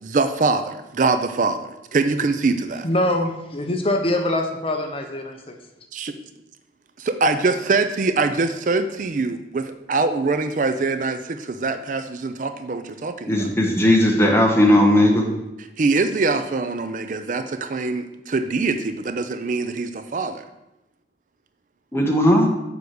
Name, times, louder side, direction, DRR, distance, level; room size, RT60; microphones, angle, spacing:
voice 1, 0.0-2.9 5.9-6.1 7.0-13.5 15.6-20.4, right 3 dB, 45° right, 9 dB, 0.4 m, -23 dB
voice 2, 2.8-5.4, left 1 dB, 30° left, 4 dB, 0.7 m, -23 dB
voice 3, 13.3-15.2 21.9-22.5, left 1 dB, 15° left, 1 dB, 1.1 m, -16 dB
7.0 x 4.8 x 6.3 m, 0.94 s
head